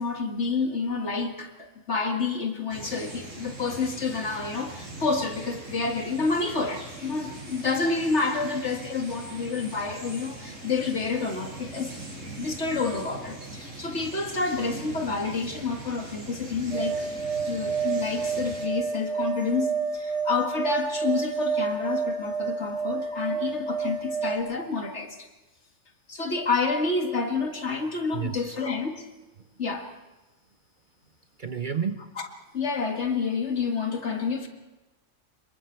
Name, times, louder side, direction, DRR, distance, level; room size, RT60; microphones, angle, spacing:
voice 1, 0.0-11.9 12.4-17.0 17.5-25.3 26.1-29.0 29.6-29.9 32.5-34.5, left 4 dB, 60° left, 4 dB, 2.2 m, -29 dB
sound 1, 2.7-18.7, right 2 dB, 90° right, 5.1 m, -41 dB
sound 2, 16.7-24.4, right 5 dB, 70° right, 3.6 m, -29 dB
voice 2, 28.1-28.6 31.4-32.0, right 7 dB, 45° right, 8 dB, 0.8 m, -31 dB
26.0 x 22.5 x 4.6 m, 1.1 s
omnidirectional pair, 1.3 m